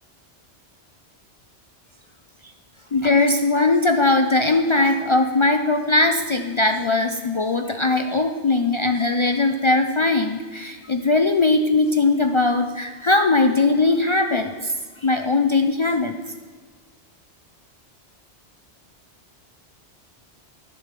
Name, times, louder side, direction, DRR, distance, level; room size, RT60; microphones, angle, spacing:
voice 1, 2.9-14.7 15.0-16.1, left 3 dB, 55° left, 6 dB, 0.3 m, -20 dB
10.5 x 5.2 x 6.5 m, 1.4 s
omnidirectional pair, 1.1 m